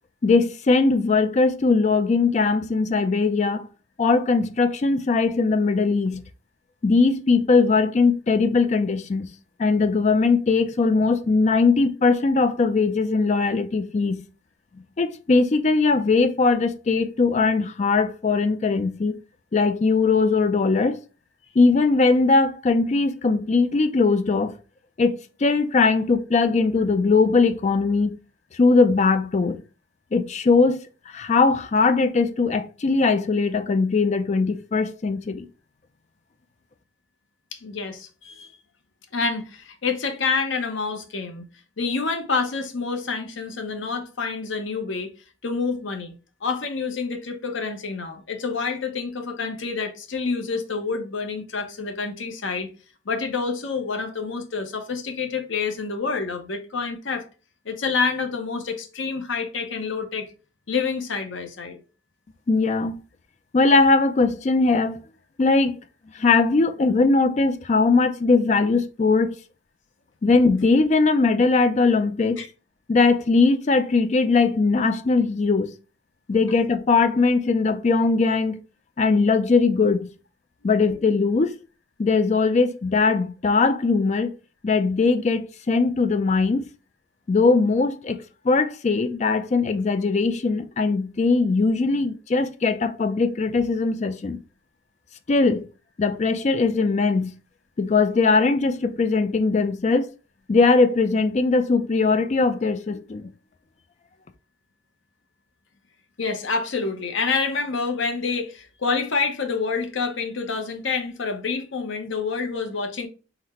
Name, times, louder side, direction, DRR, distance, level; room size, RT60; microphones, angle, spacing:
voice 1, 0.2-3.7 4.0-6.2 6.8-9.3 9.6-14.2 15.0-19.2 19.5-21.0 21.6-24.5 25.0-28.1 28.5-29.6 30.1-30.8 31.1-35.5 62.5-63.0 63.5-65.0 65.4-65.8 66.1-69.4 70.2-72.5 72.9-75.7 76.3-78.6 79.0-80.1 80.6-81.5 82.0-84.3 84.6-86.6 87.3-94.4 95.3-95.7 96.0-97.3 97.8-100.1 100.5-103.3, left 4 dB, 35° left, 0.3 m, -20 dB
voice 2, 37.5-38.5 39.1-41.5 41.8-45.1 45.4-46.1 46.4-52.7 53.1-57.3 57.6-60.3 60.7-61.8 72.4-72.5 80.6-81.1 106.2-113.1, left 4 dB, 70° left, 0.7 m, -28 dB
3.9 x 2.1 x 4.2 m
head